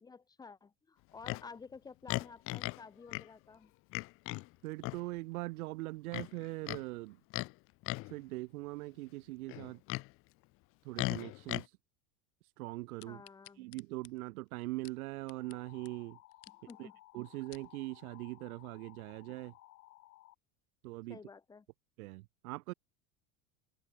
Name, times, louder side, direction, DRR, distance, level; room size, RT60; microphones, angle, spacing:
voice 1, 0.0-3.7 13.1-13.7 16.7-16.9 21.1-21.7, left 5 dB, 10° left, 0.8 m, -52 dB
Livestock farm animals working animals, 1.2-1.5 2.1-2.8 3.1-3.3 3.9-4.5 4.8-5.0 6.1-6.8 7.3-7.5 7.8-8.2 9.5-10.1 11.0-11.6, left 23 dB, 35° left, 0.4 m, -37 dB
voice 2, 4.6-7.2 8.0-9.8 10.8-11.8 12.4-13.2 13.5-16.2 16.8-19.5 20.8-21.2 22.0-22.7, right 20 dB, 85° right, 1.3 m, -42 dB
sound 1, 13.0-15.6 15.8-15.9 16.3-16.8 17.2-17.7 18.3-18.4, left 29 dB, 55° left, 3.0 m, -57 dB
sound 2, 15.3-20.4, left 18 dB, 85° left, 3.4 m, -59 dB
open air
supercardioid pair, 145°, 43 cm